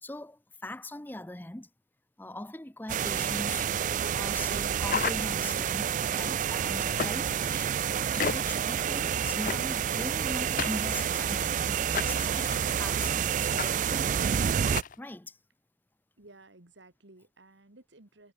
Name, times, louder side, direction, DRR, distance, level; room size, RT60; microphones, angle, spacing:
voice 1, 0.0-1.7 2.2-3.7 4.1-14.2 15.0-15.4, left 1 dB, 10° left, 0.7 m, -41 dB
sound 1, 2.9-14.8, right 8 dB, 45° right, 0.3 m, -29 dB
sound 2, 4.8-5.7 7.0-7.5 8.2-8.7 9.5-9.9 10.6-11.4 11.9-12.7 13.6-13.7 14.0-14.1 14.6-14.9, left 6 dB, 45° left, 0.6 m, -34 dB
voice 2, 16.2-18.3, right 2 dB, 85° right, 2.7 m, -55 dB
head